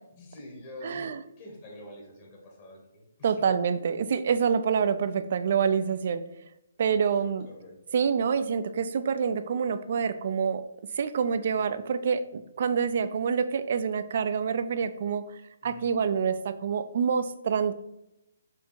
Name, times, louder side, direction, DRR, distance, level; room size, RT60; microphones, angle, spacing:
voice 1, 0.1-1.1 1.4-3.5 7.0-7.9 15.6-15.9, left 1 dB, 35° left, -1 dB, 1.3 m, -47 dB
voice 2, 0.8-1.2 3.2-6.2 6.8-7.5 7.9-10.6 10.9-15.3 15.6-17.7, right 6 dB, 50° right, 12 dB, 0.3 m, -27 dB
4.5 x 2.7 x 4.2 m, 0.85 s
figure-of-eight pair, 135°, 0 cm